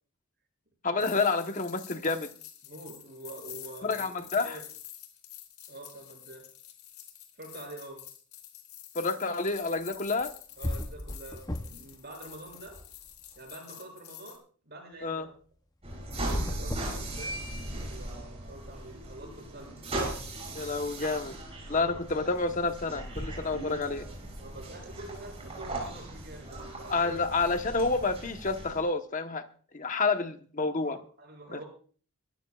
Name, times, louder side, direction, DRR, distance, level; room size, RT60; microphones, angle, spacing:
voice 1, 0.8-2.3 3.8-4.6 8.9-10.3 15.0-15.3 20.5-21.4 21.7-24.1 26.9-29.5 29.7-31.0 31.5-31.6, left 3 dB, 35° left, 7 dB, 1.1 m, -29 dB
sound 1, 1.0-14.4, left 12 dB, 75° left, 3.4 m, -48 dB
voice 2, 2.6-4.1 4.4-4.6 5.7-6.4 7.4-8.0 10.6-12.8 13.4-15.3 16.1-17.4 17.8-19.8 21.7-22.0 24.4-27.1 30.8-31.7, right 2 dB, 45° right, 1 dB, 7.1 m, -46 dB
sound 2, 10.2-10.3 10.6-12.0 12.3-13.4 16.1-17.7, left 1 dB, 15° left, 0.7 m, -36 dB
sound 3, 15.8-28.8, right 1 dB, 30° right, 6.1 m, -38 dB
24.0 x 14.5 x 2.4 m, 0.42 s
head